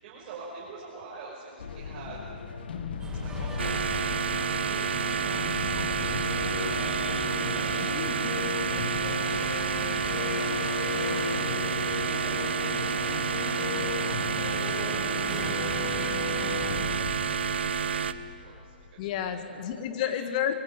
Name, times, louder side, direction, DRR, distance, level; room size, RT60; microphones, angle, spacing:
voice 1, 0.0-2.2 3.1-7.7 8.3-10.4 10.6-19.6 20.0-20.3, right 4 dB, 40° right, -5 dB, 5.6 m, -47 dB
sound 1, 1.6-19.2, left 6 dB, 70° left, 1.9 m, -36 dB
sound 2, 3.0-17.0, right 3 dB, 10° right, 2.4 m, -42 dB
sound 3, 3.6-18.1, right 6 dB, 80° right, 1.0 m, -29 dB
voice 2, 7.9-8.4 19.0-20.5, left 9 dB, 45° left, 8 dB, 1.7 m, -31 dB
23.0 x 16.5 x 9.1 m, 2.3 s
hypercardioid pair, 140°, 6 cm